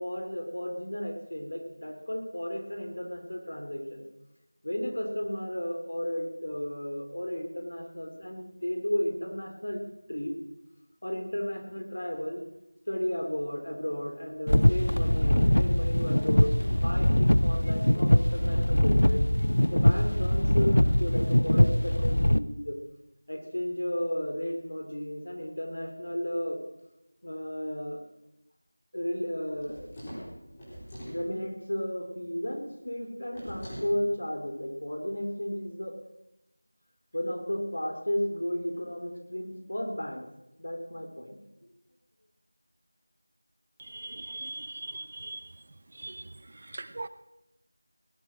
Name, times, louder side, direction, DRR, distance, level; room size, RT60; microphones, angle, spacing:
voice 1, 0.0-4.0 4.6-9.8 10.1-10.4 11.0-12.4 12.9-19.2 19.7-22.8 23.3-26.6 27.2-28.0 28.9-30.0 31.1-35.9 37.1-40.3 40.6-41.7, equal, 70° left, 3 dB, 3.6 m, -34 dB
sound 1, 14.5-22.4, equal, 85° left, 0.7 m, -22 dB
sound 2, 29.5-31.2 33.3-33.9, equal, 15° left, 4.4 m, -42 dB
voice 2, 43.9-45.4 46.0-46.2 46.7-47.1, right 2 dB, 30° right, 13 dB, 0.5 m, -39 dB
18.0 x 10.0 x 6.2 m, 0.90 s
figure-of-eight pair, 175°, 0 cm